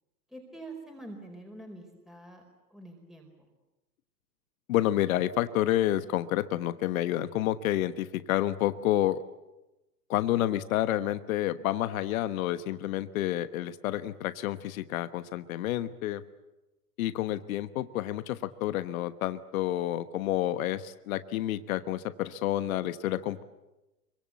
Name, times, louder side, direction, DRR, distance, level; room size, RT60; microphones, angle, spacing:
voice 1, 0.3-2.4 2.7-3.5, right 2 dB, ahead, 2 dB, 4.5 m, -46 dB
voice 2, 4.7-9.2 10.1-16.2 17.0-23.4, left 13 dB, 60° left, 12 dB, 1.3 m, -29 dB
26.0 x 24.0 x 8.5 m, 0.99 s
hypercardioid pair, 110°, 48 cm